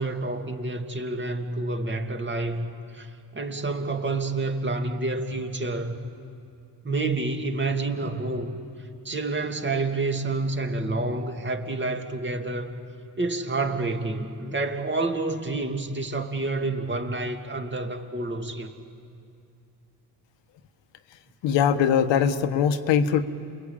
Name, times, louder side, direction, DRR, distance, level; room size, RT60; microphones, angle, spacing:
voice 1, 0.0-2.7 2.9-6.0 6.8-8.6 9.0-12.7 13.2-18.7, right 2 dB, 25° right, 4 dB, 2.4 m, -28 dB
voice 2, 21.4-23.2, left 8 dB, 75° left, 9 dB, 1.3 m, -21 dB
28.0 x 21.5 x 8.7 m, 2.5 s
cardioid pair, 80°, 44 cm